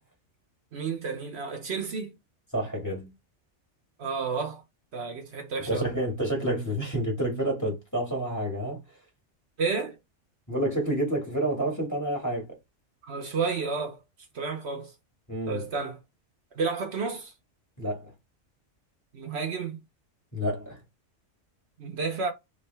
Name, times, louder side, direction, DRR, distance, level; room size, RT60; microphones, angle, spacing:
voice 1, 0.7-2.2 4.0-4.6 4.9-5.9 9.6-10.0 13.0-14.0 14.3-14.9 15.5-16.0 16.5-17.3 19.1-19.8 21.8-22.3, right 5 dB, 65° right, 1.1 m, -31 dB
voice 2, 2.5-3.1 5.7-8.8 10.5-12.6 15.3-15.6 17.8-18.1 20.3-20.8, right 1 dB, 15° left, 1.8 m, -29 dB
3.5 x 3.3 x 3.3 m
omnidirectional pair, 1.2 m